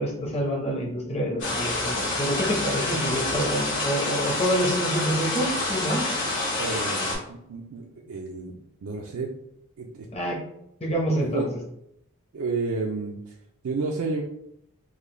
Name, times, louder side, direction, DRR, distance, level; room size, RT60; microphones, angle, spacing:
voice 1, 0.0-6.1 10.1-10.4 10.8-11.6, equal, 30° left, -1 dB, 0.8 m, -27 dB
sound 1, 1.4-7.1, left 2 dB, 55° left, 1.5 m, -27 dB
voice 2, 6.6-9.3 9.8-10.1 11.3-11.5 12.3-13.3 13.6-14.2, right 3 dB, 65° right, 0 dB, 0.4 m, -31 dB
3.7 x 2.1 x 3.2 m, 0.76 s
head